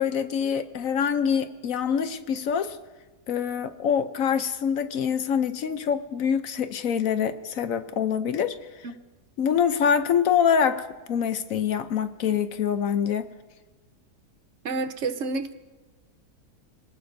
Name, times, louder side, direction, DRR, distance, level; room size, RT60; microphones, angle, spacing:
voice 1, 0.0-2.8 3.3-8.9 9.4-13.3, left 7 dB, 65° left, 10 dB, 1.0 m, -25 dB
voice 2, 14.6-15.5, right 3 dB, 55° right, 10 dB, 0.9 m, -29 dB
26.5 x 18.5 x 2.6 m, 1.3 s
omnidirectional pair, 1.7 m